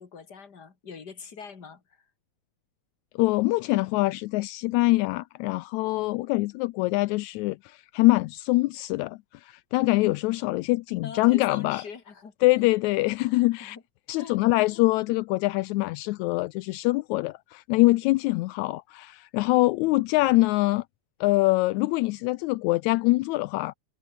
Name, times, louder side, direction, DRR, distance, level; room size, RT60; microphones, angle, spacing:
voice 1, 0.0-2.0 10.9-12.7 13.2-13.8 14.2-14.4, left 6 dB, 35° left, 3.0 m, -43 dB
voice 2, 3.2-11.8 12.4-13.8 14.1-20.8 21.2-23.7, left 20 dB, 80° left, 1.9 m, -24 dB
omnidirectional pair, 3.3 m